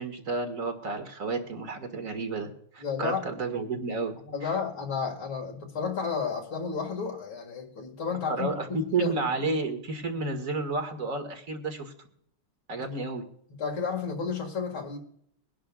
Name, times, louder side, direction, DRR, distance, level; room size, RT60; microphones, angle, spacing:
voice 1, 0.0-4.2 4.4-4.5 8.3-11.9 12.7-13.2, right 3 dB, 40° right, 6 dB, 2.1 m, -31 dB
voice 2, 2.8-3.2 4.3-9.1 13.6-15.0, left 6 dB, 75° left, 0 dB, 2.7 m, -32 dB
23.0 x 11.5 x 2.3 m, 0.67 s
omnidirectional pair, 2.2 m